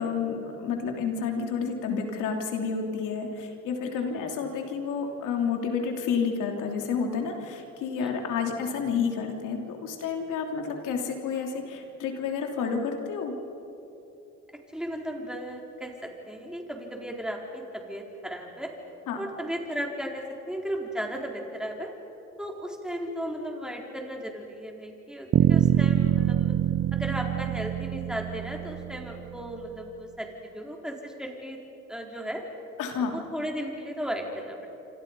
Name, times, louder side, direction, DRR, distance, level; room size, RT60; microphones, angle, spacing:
voice 1, 0.0-13.3 19.1-19.2 32.8-33.1, left 6 dB, 90° left, 3 dB, 3.1 m, -30 dB
voice 2, 3.9-4.3 8.0-8.4 14.7-18.7 19.2-21.9 22.4-26.6 26.9-31.6 31.9-32.4 33.0-34.7, equal, ahead, 0 dB, 4.3 m, -35 dB
sound 1, 25.3-29.3, right 11 dB, 50° right, 0.6 m, -24 dB
28.0 x 26.0 x 5.5 m, 2.9 s
cardioid pair, 90°, 30 cm